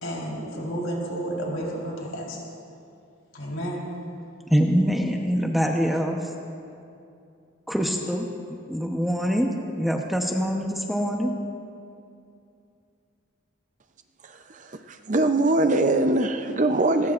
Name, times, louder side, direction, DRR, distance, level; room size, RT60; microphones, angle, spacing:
voice 1, 0.0-2.4 3.3-3.9, right 1 dB, 85° left, -3 dB, 4.0 m, -31 dB
voice 2, 4.5-6.3 7.7-8.3 8.7-9.5 9.8-11.3, equal, ahead, 1 dB, 0.9 m, -24 dB
voice 3, 14.2-17.1, right 2 dB, 40° right, 7 dB, 0.6 m, -23 dB
21.0 x 20.0 x 2.5 m, 2.5 s
head